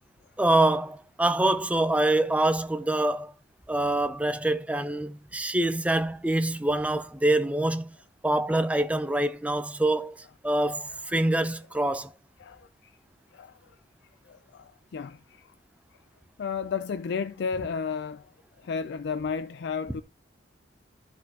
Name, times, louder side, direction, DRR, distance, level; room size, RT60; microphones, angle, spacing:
voice 1, 0.4-3.3 3.7-7.9 8.2-12.1, right 1 dB, 5° right, 0.5 m, -25 dB
voice 2, 12.4-12.9 13.3-13.5 14.3-15.5 16.4-18.3 18.6-20.0, left 6 dB, 65° left, 0.4 m, -33 dB
12.0 x 6.4 x 2.8 m
head